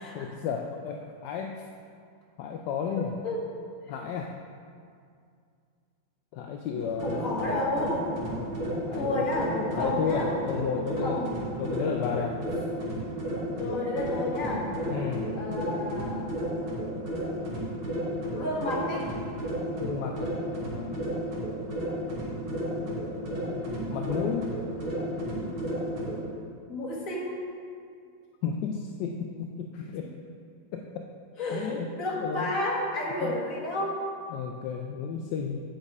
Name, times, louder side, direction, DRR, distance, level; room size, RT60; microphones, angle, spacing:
voice 1, 0.1-1.6 2.4-3.2 3.9-4.4 6.3-7.2 7.8-7.9 8.3-11.2 11.6-12.6 14.9-15.3 19.8-21.2 23.4-24.6 28.4-30.1 30.7-31.1 31.5-32.6 33.2-33.4 34.3-35.6, left 6 dB, 75° left, 3 dB, 1.1 m, -33 dB
sound 1, 6.7-26.2, equal, 90° right, 2.8 m, -33 dB
voice 2, 7.0-8.1 9.0-10.3 10.7-11.3 13.5-14.7 15.4-16.3 18.3-19.1 26.7-27.4 31.4-34.0, left 1 dB, 45° left, -4 dB, 1.8 m, -31 dB
9.0 x 6.4 x 4.8 m, 2.3 s
omnidirectional pair, 2.2 m